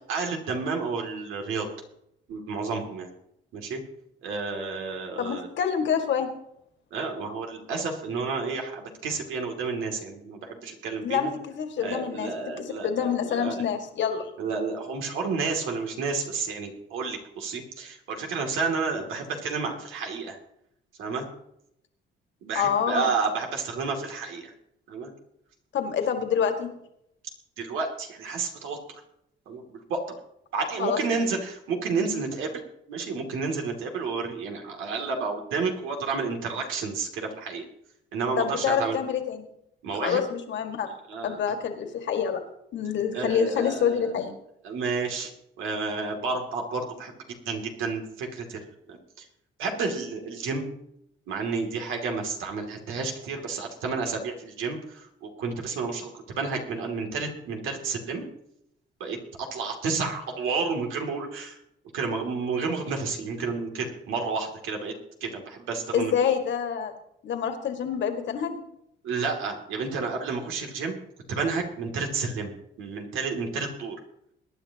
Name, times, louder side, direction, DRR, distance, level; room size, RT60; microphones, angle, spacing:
voice 1, 0.1-1.7 2.3-3.1 3.5-3.8 4.2-5.5 6.9-11.3 11.8-13.6 14.4-20.4 21.0-21.3 22.4-24.5 24.9-25.1 27.6-29.0 29.5-30.0 30.5-32.6 32.9-37.6 38.1-39.0 39.8-40.2 41.1-41.4 43.1-44.0 44.6-45.3 45.6-49.2 49.6-50.6 51.3-58.2 59.0-61.6 61.9-64.9 65.2-66.1 69.0-71.0 71.3-72.5 72.8-74.0, right 4 dB, 90° right, 2 dB, 2.7 m, -31 dB
voice 2, 5.2-6.3 11.0-12.3 12.6-14.3 22.5-23.1 25.7-26.7 30.5-31.0 38.4-39.5 40.0-40.9 41.2-42.4 42.7-44.3 65.9-66.9 67.2-68.6, left 7 dB, 70° left, 5 dB, 2.0 m, -27 dB
22.0 x 10.5 x 2.9 m, 0.78 s
cardioid pair, 90°, 20 cm